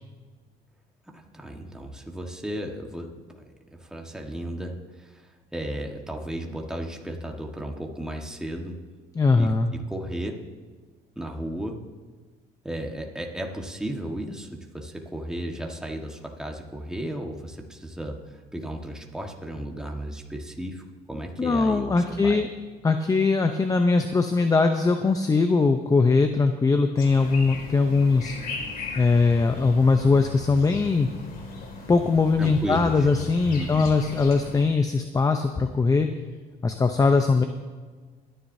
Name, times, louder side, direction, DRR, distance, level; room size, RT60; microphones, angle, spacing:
voice 1, 1.1-3.4 3.7-8.8 9.3-10.4 11.2-11.8 12.6-22.4 32.4-33.1 33.5-33.9, right 1 dB, 5° right, 1 dB, 1.5 m, -34 dB
voice 2, 9.2-9.7 21.4-22.5 22.8-28.4 29.0-31.1 31.9-36.1 36.6-37.4, left 4 dB, 20° left, 7 dB, 0.7 m, -21 dB
sound 1, 27.0-34.6, left 4 dB, 60° left, 2.4 m, -38 dB
22.5 x 10.0 x 2.7 m, 1.4 s
cardioid pair, 110°, 17 cm